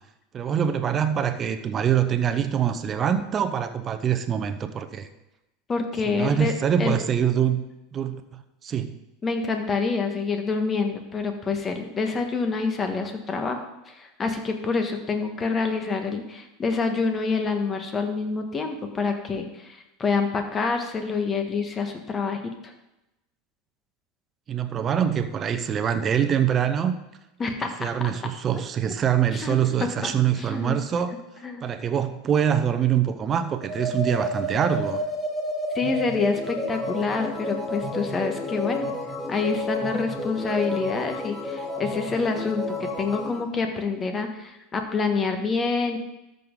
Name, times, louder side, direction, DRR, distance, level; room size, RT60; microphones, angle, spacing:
voice 1, 0.3-5.1 6.1-7.7 7.9-9.0 24.5-27.0 27.8-31.1 31.6-35.0, right 8 dB, 35° right, 9 dB, 0.9 m, -24 dB
voice 2, 5.7-7.0 9.2-22.7 27.4-28.1 29.3-29.6 30.0-30.1 30.4-30.8 31.4-31.7 35.7-38.9 39.3-46.0, left 4 dB, 30° left, 5 dB, 1.6 m, -27 dB
sound 1, 33.6-43.4, left 1 dB, 5° right, 3.1 m, -30 dB
13.5 x 5.4 x 3.9 m, 0.94 s
hypercardioid pair, 85°, 0 cm